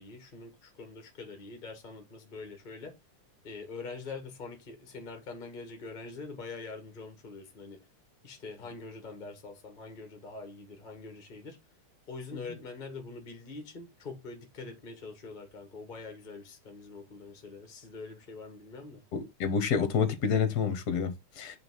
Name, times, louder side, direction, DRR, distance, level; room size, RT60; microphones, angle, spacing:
voice 1, 0.0-2.9 3.4-7.8 8.2-11.6 12.1-19.0, left 3 dB, 25° left, 1.4 m, -44 dB
voice 2, 19.1-21.6, left 6 dB, 50° left, 1.6 m, -28 dB
8.9 x 3.6 x 3.6 m
omnidirectional pair, 2.4 m